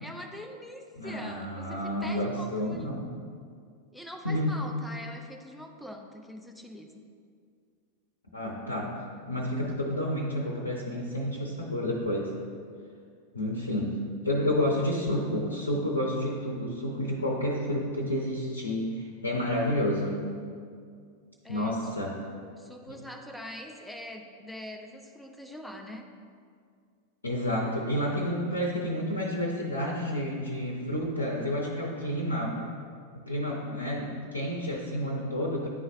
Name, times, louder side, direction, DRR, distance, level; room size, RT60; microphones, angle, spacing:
voice 1, 0.0-3.0 3.9-7.1 21.4-21.8 22.3-26.1 28.2-28.3 33.6-33.8 34.6-34.7 35.2-35.3 35.6-35.7, equal, ahead, 2 dB, 0.6 m, -43 dB
voice 2, 1.0-3.1 4.2-4.5 8.3-9.0 9.2-12.3 13.3-14.0 14.2-20.2 21.5-22.2 22.9-23.0 27.2-32.6 33.1-35.7, left 1 dB, 75° left, -1 dB, 0.7 m, -30 dB
10.0 x 3.9 x 2.6 m, 2.2 s
figure-of-eight pair, 90°, 0 cm